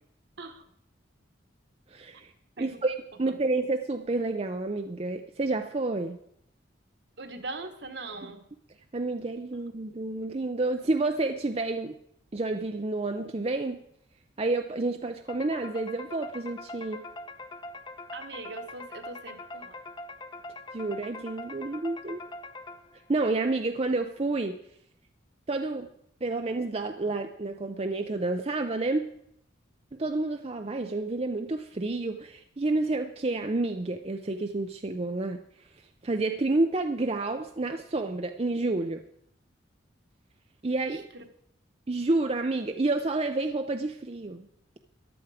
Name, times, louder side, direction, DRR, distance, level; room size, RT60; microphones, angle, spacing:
voice 1, 1.9-2.3 2.6-6.2 8.9-11.9 12.3-13.8 14.4-17.0 20.7-22.2 23.1-24.6 25.5-25.9 26.2-29.1 30.0-35.4 36.0-39.0 40.6-41.1 41.9-44.5, right 2 dB, 30° right, 5 dB, 0.5 m, -29 dB
voice 2, 7.2-8.5 18.1-19.8 40.8-41.3, right 3 dB, 60° right, 6 dB, 1.4 m, -41 dB
sound 1, 15.3-23.1, left 2 dB, 25° left, 0.6 m, -43 dB
14.0 x 11.0 x 4.9 m, 0.72 s
head